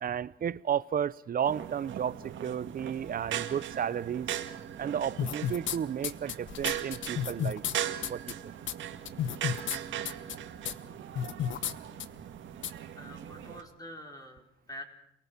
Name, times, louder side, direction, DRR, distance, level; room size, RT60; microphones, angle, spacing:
voice 1, 0.0-4.3 4.8-7.6 8.1-8.5, right 8 dB, 45° right, 0.8 m, -33 dB
sound 1, 1.4-13.6, right 10 dB, 75° right, 2.1 m, -39 dB
sound 2, 5.2-5.8 6.0-7.7 8.0-8.3 8.7-8.8 9.1-9.8 10.1-10.4 10.7-10.8 11.2-11.7 12.0-12.1 12.6-12.7, left 9 dB, 70° left, 1.2 m, -32 dB
voice 2, 12.9-14.8, left 1 dB, 20° left, 4.7 m, -46 dB
29.0 x 19.0 x 6.0 m
cardioid pair, 90°, 20 cm